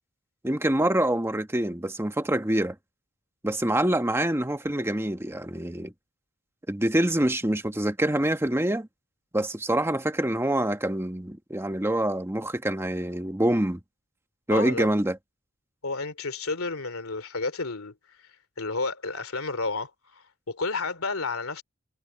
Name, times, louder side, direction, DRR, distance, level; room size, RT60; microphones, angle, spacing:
voice 1, 0.4-2.7 3.4-5.9 6.7-8.9 9.3-13.8 14.5-15.2, right 1 dB, 10° right, 1.2 m, -25 dB
voice 2, 14.5-14.9 15.8-17.9 18.6-21.6, left 3 dB, 75° left, 3.0 m, -31 dB
head